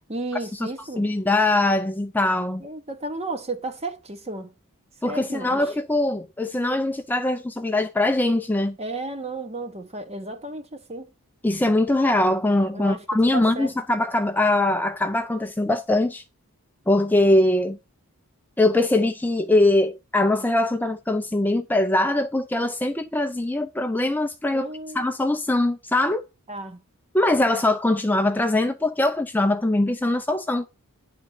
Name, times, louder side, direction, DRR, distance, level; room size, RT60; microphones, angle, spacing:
voice 1, 0.1-1.1 2.6-4.5 5.0-5.6 8.8-11.1 12.7-13.0 13.3-13.7 24.5-25.1 26.5-26.8, right 2 dB, 30° right, 1.2 m, -33 dB
voice 2, 1.0-2.6 5.0-8.8 11.4-16.2 16.9-17.8 18.6-24.7 24.9-26.2 27.1-30.7, left 2 dB, 10° left, 0.4 m, -22 dB
10.0 x 3.8 x 7.4 m
head